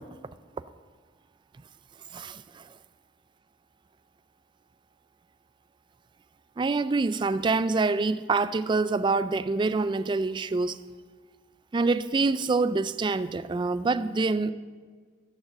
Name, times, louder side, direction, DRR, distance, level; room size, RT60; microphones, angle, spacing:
voice 1, 2.1-2.6 6.6-10.8 11.7-14.5, right 3 dB, 25° right, 0.3 m, -26 dB
12.0 x 6.5 x 7.0 m
head